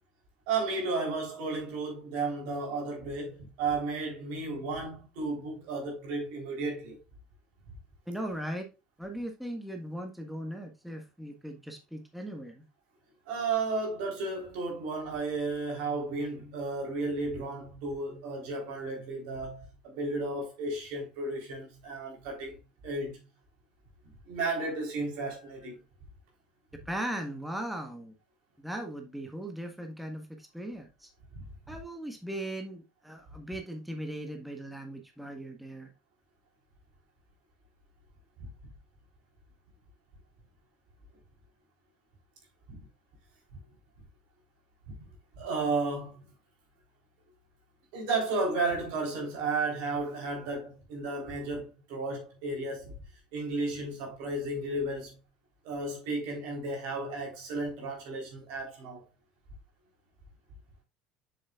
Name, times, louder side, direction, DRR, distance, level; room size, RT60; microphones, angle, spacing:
voice 1, 0.5-7.0 13.3-22.6 22.8-23.2 24.3-25.8 31.3-31.7 42.7-42.8 45.4-46.2 47.9-52.9 53.3-55.2 55.6-59.0, right 3 dB, 65° right, 3.8 m, -33 dB
voice 2, 8.1-8.7 9.0-12.6 26.8-28.1 28.6-31.1 31.7-35.9, right 1 dB, ahead, 1.5 m, -38 dB
7.3 x 7.0 x 2.4 m
hypercardioid pair, 65°, 4 cm